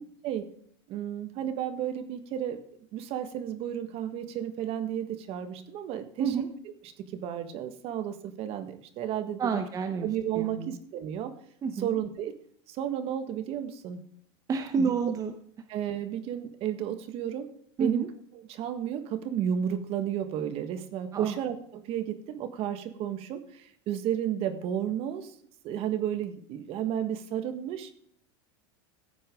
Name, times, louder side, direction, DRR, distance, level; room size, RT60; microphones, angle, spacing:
voice 1, 0.9-2.6 2.9-6.4 7.0-9.6 10.0-11.3 11.8-12.3 12.7-14.0 14.8-14.9 15.7-17.5 17.8-18.1 18.3-25.3 25.6-27.9, right 10 dB, 45° right, 9 dB, 1.6 m, -32 dB
voice 2, 9.4-10.1 10.3-10.7 11.6-11.9 14.5-15.3 17.8-18.1 21.1-21.3, right 5 dB, 25° right, 5 dB, 1.0 m, -29 dB
15.5 x 8.5 x 3.7 m, 0.63 s
supercardioid pair, 135°, 14 cm